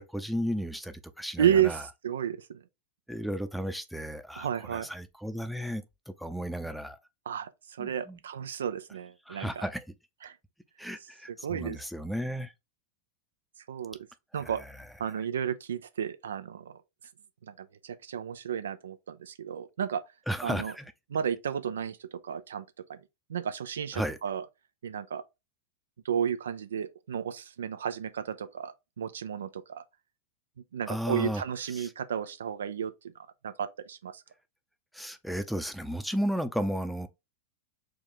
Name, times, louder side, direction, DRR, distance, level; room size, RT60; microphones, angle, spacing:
voice 1, 0.0-1.8 3.1-7.0 7.8-8.2 9.3-9.8 10.8-12.5 14.4-14.9 20.3-20.9 23.9-24.2 30.9-31.4 31.7-31.9 34.9-37.1, equal, ahead, 0.6 m, -34 dB
voice 2, 1.4-1.8 2.0-2.6 4.4-4.9 7.3-9.6 10.2-10.3 11.4-11.8 13.7-14.0 14.3-14.6 15.0-16.8 17.6-20.0 20.4-20.7 21.1-22.6 22.9-23.0 23.3-24.4 24.8-25.2 26.0-29.8 30.7-32.9 33.4-34.2, right 8 dB, 75° right, 0.4 m, -32 dB
4.6 x 2.3 x 3.8 m
hypercardioid pair, 95°, 0 cm